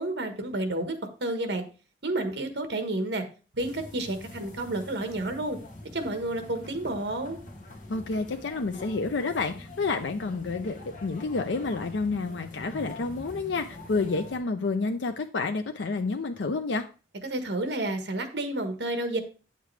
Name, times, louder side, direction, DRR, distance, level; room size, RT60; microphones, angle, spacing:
voice 1, 0.0-1.6 2.0-3.3 3.5-5.6 5.9-7.4 17.2-19.2, right 2 dB, 65° right, 7 dB, 1.3 m, -30 dB
sound 1, 3.6-14.4, left 2 dB, 45° left, 1.8 m, -45 dB
voice 2, 7.9-16.8, left 3 dB, 85° left, 6 dB, 0.6 m, -29 dB
9.1 x 6.6 x 3.3 m, 0.35 s
head